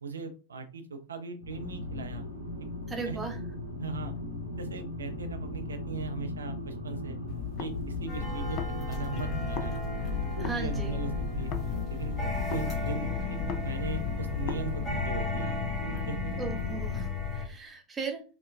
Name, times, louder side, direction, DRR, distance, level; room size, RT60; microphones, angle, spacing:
voice 1, 0.0-2.2 3.1-3.2 3.8-4.1 4.6-7.2 7.6-9.8 10.4-11.1 11.4-11.5 11.9-12.2 12.5-13.1 13.5-15.6 15.9-16.2, right 4 dB, 70° right, 7 dB, 0.4 m, -39 dB
sound 1, 1.4-17.1, left 2 dB, 85° left, 0.6 m, -38 dB
voice 2, 2.9-3.4 10.4-11.0 16.4-18.2, right 4 dB, 15° right, 3 dB, 0.6 m, -37 dB
sound 2, 7.3-9.7 10.0-14.6, left 10 dB, 40° left, 0.3 m, -38 dB
sound 3, 8.1-17.4, left 3 dB, 20° left, 0.9 m, -34 dB
3.2 x 2.1 x 2.2 m, 0.35 s
figure-of-eight pair, 90°, 0 cm